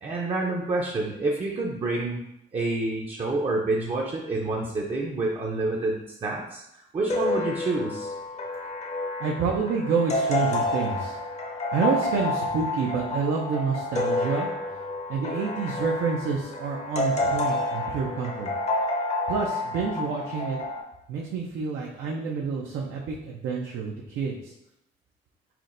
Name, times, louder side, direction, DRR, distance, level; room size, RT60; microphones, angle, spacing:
voice 1, 0.0-2.2 2.5-8.1, right 2 dB, 30° right, -1 dB, 0.5 m, -28 dB
sound 1, 7.1-20.8, left 2 dB, 35° left, 0.6 m, -29 dB
voice 2, 9.2-11.2 11.7-14.5 15.1-18.5 19.3-20.6 21.1-24.5, right 5 dB, 75° right, -1 dB, 0.6 m, -28 dB
5.7 x 2.2 x 2.5 m, 0.81 s
cardioid pair, 90°, 20 cm